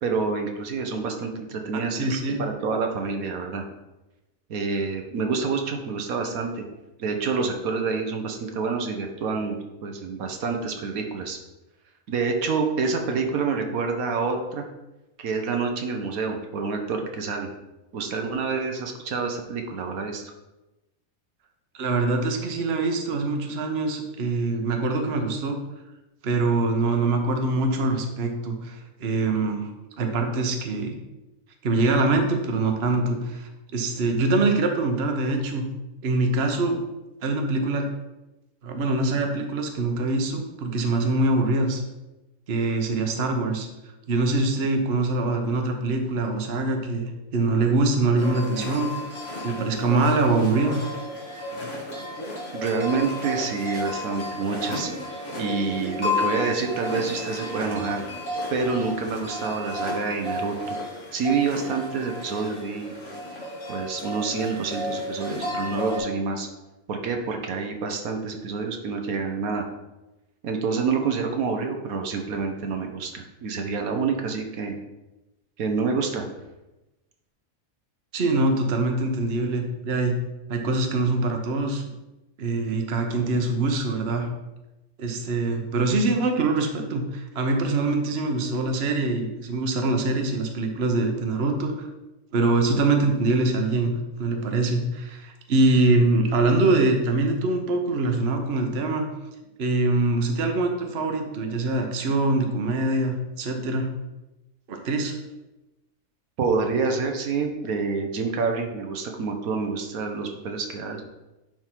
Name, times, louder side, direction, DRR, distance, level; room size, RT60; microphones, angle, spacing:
voice 1, 0.0-2.1 2.4-3.6 4.5-6.7 7.0-11.4 12.1-14.7 15.2-17.5 17.9-20.3 52.5-54.9 55.4-58.0 58.5-60.8 61.1-62.9 63.7-66.5 66.9-69.6 70.4-74.8 75.6-76.2 106.4-111.0, right 4 dB, 80° right, 4 dB, 1.3 m, -27 dB
voice 2, 1.7-2.4 21.7-25.6 26.2-29.7 30.0-30.9 31.6-35.6 36.0-36.8 37.2-37.9 38.6-41.8 42.5-43.7 44.1-48.9 49.4-50.8 78.1-80.2 80.5-81.8 82.4-84.3 85.0-91.9 92.3-93.9 94.2-99.1 99.6-103.9 104.7-105.1, right 2 dB, 50° right, 4 dB, 1.1 m, -24 dB
sound 1, 48.2-66.0, left 1 dB, 55° left, 2.2 m, -33 dB
10.5 x 3.7 x 4.5 m, 1.0 s
omnidirectional pair, 1.5 m